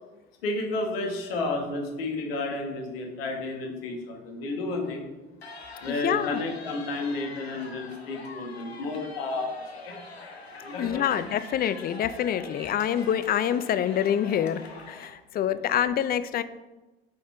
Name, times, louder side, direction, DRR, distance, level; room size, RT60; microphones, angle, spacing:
voice 1, 0.4-5.1 5.8-10.0 10.6-11.1, left 2 dB, 70° left, 2 dB, 1.5 m, -32 dB
sound 1, 5.4-15.1, left 3 dB, 90° left, 0.8 m, -44 dB
voice 2, 5.9-6.4 10.8-16.4, left 9 dB, 30° left, 13 dB, 0.4 m, -26 dB
7.5 x 4.2 x 4.4 m, 1.1 s
figure-of-eight pair, 65°, 30 cm